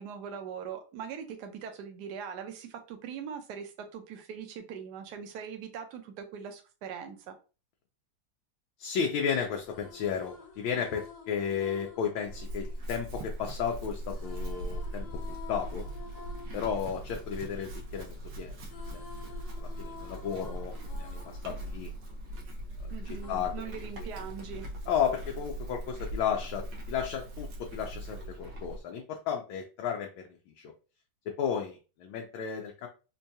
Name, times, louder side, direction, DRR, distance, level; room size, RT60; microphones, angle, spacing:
voice 1, 0.0-7.3 22.9-24.7, right 7 dB, 65° right, 6 dB, 1.1 m, -41 dB
voice 2, 8.8-15.9 16.5-18.6 18.9-19.3 19.6-21.9 22.8-22.9 23.3-23.7 24.9-30.7 31.3-32.9, left 7 dB, 85° left, 1 dB, 1.4 m, -33 dB
sound 1, 9.6-13.5 14.1-18.2 18.5-22.7 23.2-24.6, left 5 dB, 60° left, 1.5 m, -51 dB
Chewing mastication / Livestock farm animals working animals, 12.2-28.8, right 1 dB, 85° right, 1.7 m, -40 dB
4.5 x 2.2 x 2.7 m, 0.34 s
omnidirectional pair, 2.2 m